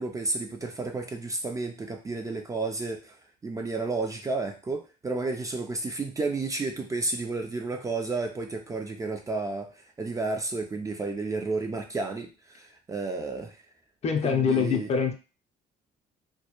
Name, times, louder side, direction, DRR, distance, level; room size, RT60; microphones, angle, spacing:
voice 1, 0.0-3.2 3.4-13.6 14.2-14.9, right 3 dB, 20° right, 3 dB, 0.3 m, -32 dB
voice 2, 14.0-15.1, left 6 dB, 40° left, 5 dB, 0.5 m, -24 dB
2.1 x 2.1 x 2.9 m, 0.32 s
cardioid pair, 110°, 17 cm